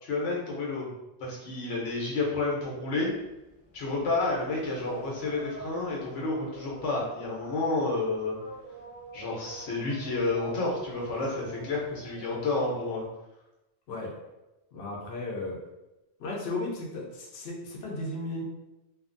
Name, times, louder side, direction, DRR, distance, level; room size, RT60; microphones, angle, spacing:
voice 1, 0.0-0.9 1.2-3.1 3.7-8.3 9.1-13.0, left 3 dB, 85° left, -3 dB, 1.1 m, -30 dB
sound 1, 3.0-13.1, right 2 dB, 35° left, 0.5 m, -47 dB
voice 2, 14.7-15.6 16.2-18.4, left 2 dB, 65° left, -3 dB, 0.8 m, -35 dB
2.6 x 2.4 x 2.5 m, 0.98 s
omnidirectional pair, 1.2 m